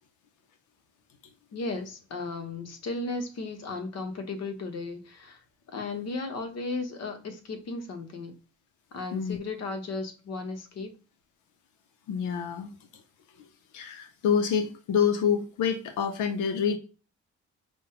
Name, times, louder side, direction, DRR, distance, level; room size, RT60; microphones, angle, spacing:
voice 1, 1.5-8.4 8.9-11.0, left 3 dB, 60° left, 0.9 m, -35 dB
voice 2, 12.1-12.7 13.4-13.5 13.7-16.8, left 7 dB, 85° left, 0.6 m, -27 dB
5.3 x 2.1 x 2.7 m
cardioid pair, 90°, 30 cm